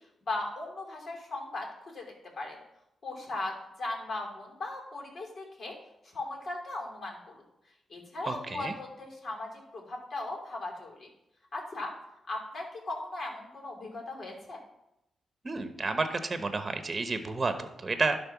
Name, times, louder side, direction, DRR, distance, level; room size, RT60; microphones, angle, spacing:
voice 1, 0.2-2.1 2.4-2.6 3.0-5.7 6.0-7.4 7.9-11.1 11.5-11.9 12.3-14.6, left 2 dB, 55° left, -1 dB, 3.0 m, -38 dB
voice 2, 8.3-8.7 15.4-18.2, right 3 dB, 40° right, 8 dB, 0.9 m, -31 dB
11.0 x 3.8 x 6.0 m, 0.85 s
supercardioid pair, 50°, 0 cm